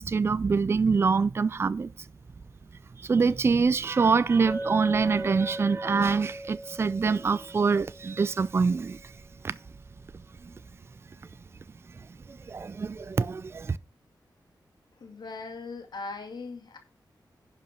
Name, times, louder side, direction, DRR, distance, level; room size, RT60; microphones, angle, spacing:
voice 1, 0.0-1.9 3.0-9.1 9.4-9.6 10.4-10.5 12.3-13.8, right 5 dB, 35° right, 0.4 m, -25 dB
Chink clink, 4.5-8.7, right 1 dB, 5° left, 3.1 m, -38 dB
voice 2, 15.0-16.8, left 3 dB, 70° left, 2.3 m, -39 dB
11.0 x 5.0 x 5.7 m
wide cardioid pair, 145°, 7 cm